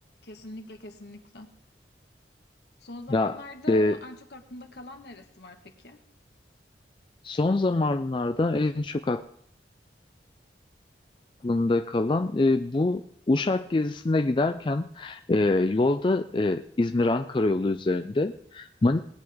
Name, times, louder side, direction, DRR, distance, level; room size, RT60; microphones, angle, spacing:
voice 1, 0.2-1.5 2.8-6.0, left 1 dB, 70° left, 5 dB, 1.5 m, -43 dB
voice 2, 7.2-9.2 11.4-13.0 13.3-19.0, left 2 dB, 30° left, 8 dB, 0.4 m, -25 dB
19.5 x 9.6 x 3.5 m, 0.67 s
head